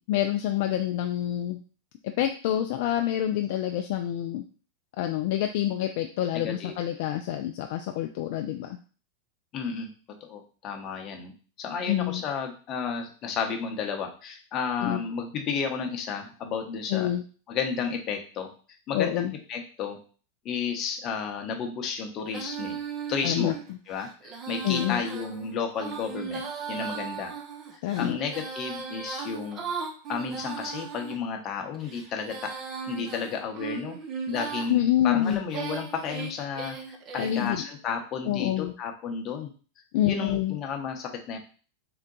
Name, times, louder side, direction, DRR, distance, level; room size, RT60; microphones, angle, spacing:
voice 1, 0.0-1.6 2.0-4.5 5.0-8.8 11.9-12.2 14.8-15.0 16.9-17.2 18.9-19.3 23.2-23.8 24.6-25.0 27.8-28.2 34.7-35.4 37.2-37.7 38.3-38.7 39.9-40.6, left 12 dB, 60° left, 5 dB, 0.3 m, -27 dB
voice 2, 6.4-6.7 9.5-9.9 10.2-11.3 11.6-17.1 17.5-18.5 18.9-19.2 19.5-20.0 20.4-22.8 23.1-23.5 23.9-27.3 28.0-29.7 30.1-32.5 32.9-34.0 34.3-39.5 40.0-41.4, left 6 dB, 40° left, 3 dB, 0.8 m, -32 dB
Female singing, 22.3-31.2 31.7-34.7 35.2-37.5, right 6 dB, 35° right, 0.7 m, -37 dB
3.8 x 2.2 x 3.8 m, 0.39 s
hypercardioid pair, 105°, 0 cm